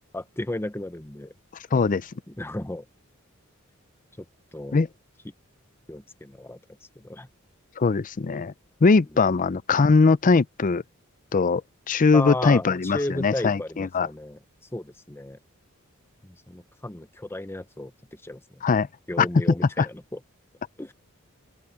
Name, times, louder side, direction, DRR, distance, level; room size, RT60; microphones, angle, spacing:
voice 1, 0.1-1.3 2.3-2.8 4.5-4.8 5.9-6.6 7.0-7.3 12.1-14.4 14.7-15.4 16.2-17.9 18.2-18.6 19.1-20.2 20.8-20.9, left 1 dB, 10° left, 0.8 m, -34 dB
voice 2, 1.7-2.1 4.7-4.9 7.8-8.5 8.8-10.8 11.3-11.6 11.9-14.1 18.6-18.9 19.2-19.3 19.8-19.9, left 4 dB, 40° left, 0.5 m, -20 dB
open air
head